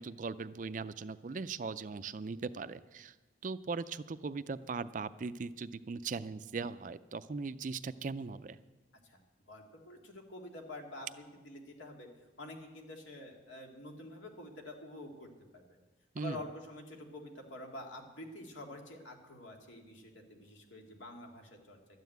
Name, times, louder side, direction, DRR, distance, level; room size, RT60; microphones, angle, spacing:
voice 1, 0.0-3.1 3.4-8.6 16.1-16.4, right 4 dB, 40° right, 14 dB, 0.4 m, -39 dB
voice 2, 9.5-12.1 12.4-15.3 15.5-15.8 16.2-21.8, left 1 dB, 80° left, 1 dB, 2.2 m, -48 dB
13.0 x 9.3 x 7.9 m, 1.2 s
head